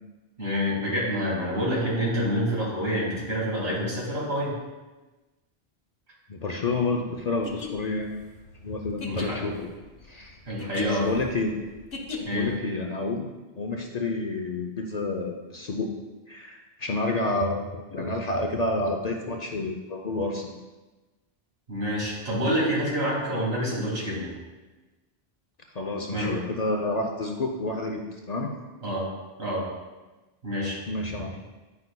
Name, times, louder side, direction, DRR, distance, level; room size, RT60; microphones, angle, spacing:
voice 1, 0.4-4.6 9.0-9.4 10.5-11.1 12.2-12.5 21.7-24.3 26.1-26.4 28.8-29.1 29.4-29.7 30.4-30.8, equal, 80° right, -6 dB, 2.4 m, -27 dB
voice 2, 6.3-8.1 8.6-9.7 10.0-10.4 10.9-11.5 12.3-15.9 16.3-20.5 25.7-28.5 30.9-31.4, left 2 dB, 50° left, 1 dB, 0.5 m, -29 dB
sound 1, 7.3-12.6, left 4 dB, 75° left, 1.2 m, -38 dB
9.4 x 5.3 x 2.2 m, 1.2 s
omnidirectional pair, 1.1 m